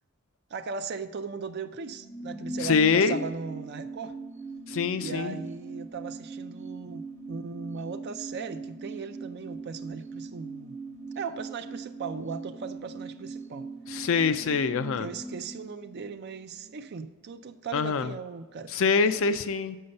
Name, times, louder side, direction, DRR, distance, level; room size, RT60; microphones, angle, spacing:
voice 1, 0.5-4.2 4.9-10.8 11.2-13.7 15.0-18.7, right 5 dB, 50° right, 0.4 m, -38 dB
sound 1, 1.7-16.8 17.0-17.1, right 3 dB, 15° left, 2.4 m, -41 dB
voice 2, 2.6-3.2 4.7-5.4 13.9-15.1 17.7-18.1 18.7-19.8, left 5 dB, 65° left, 0.4 m, -25 dB
7.8 x 5.6 x 6.4 m
head